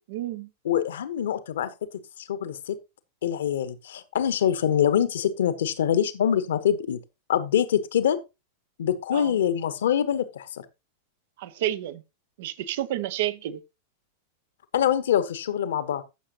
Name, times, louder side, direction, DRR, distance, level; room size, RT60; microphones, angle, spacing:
voice 1, 0.0-0.5 9.1-9.4 11.4-12.0 12.4-13.6, right 13 dB, 55° right, 0.9 m, -30 dB
voice 2, 0.6-1.7 2.2-2.8 3.2-7.0 7.3-8.2 8.8-10.6 14.7-16.0, left 9 dB, 60° left, 1.1 m, -24 dB
15.0 x 6.6 x 2.9 m
figure-of-eight pair, 90°, 0 cm